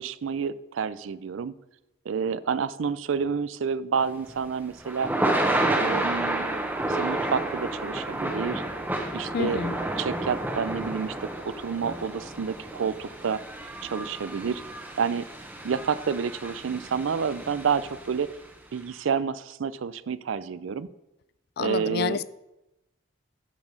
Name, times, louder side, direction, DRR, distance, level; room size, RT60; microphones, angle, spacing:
voice 1, 0.0-1.5 2.1-5.1 5.8-6.5 6.8-8.6 9.1-9.6 10.0-11.1 11.4-13.4 13.8-14.6 15.0-15.3 15.6-18.3 18.7-20.9 21.6-22.2, right 6 dB, 80° right, 0.4 m, -29 dB
Thunder / Rain, 4.1-18.3, right 1 dB, 10° right, 0.9 m, -30 dB
voice 2, 9.3-9.8 21.6-22.3, left 6 dB, 55° left, 0.3 m, -29 dB
11.0 x 4.9 x 5.3 m
head